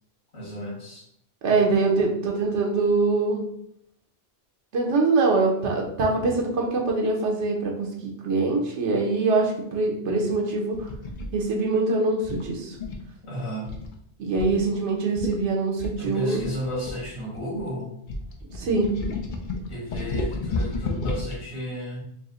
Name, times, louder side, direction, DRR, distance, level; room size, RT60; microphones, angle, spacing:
voice 1, 0.3-1.1 13.2-13.8 16.0-18.1 19.7-22.0, equal, 70° left, -7 dB, 2.0 m, -33 dB
voice 2, 1.4-3.4 4.7-10.9 11.3-12.8 14.2-16.4 18.5-18.9, right 3 dB, 85° right, 0 dB, 1.1 m, -23 dB
sound 1, 10.7-11.3 12.2-13.1 13.7-13.9 14.4-14.6 14.9-15.0 15.2-15.4 15.8-17.6 18.1-21.4, left 2 dB, 55° left, 0.7 m, -31 dB
4.8 x 2.1 x 3.7 m, 0.73 s
omnidirectional pair, 1.2 m